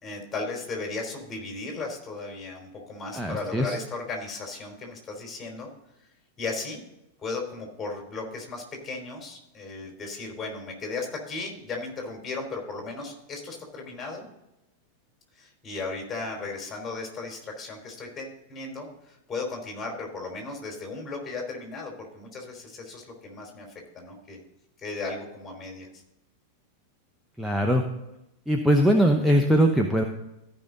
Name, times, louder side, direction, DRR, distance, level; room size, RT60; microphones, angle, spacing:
voice 1, 0.0-5.7 6.4-6.8 7.2-14.3 15.3-23.7 23.9-24.4 24.8-26.0, left 3 dB, 20° left, 1 dB, 3.4 m, -36 dB
voice 2, 3.1-3.7 27.4-27.8 28.5-30.0, equal, 5° right, 2 dB, 0.9 m, -21 dB
15.0 x 5.4 x 3.8 m, 0.90 s
figure-of-eight pair, 90°, 0 cm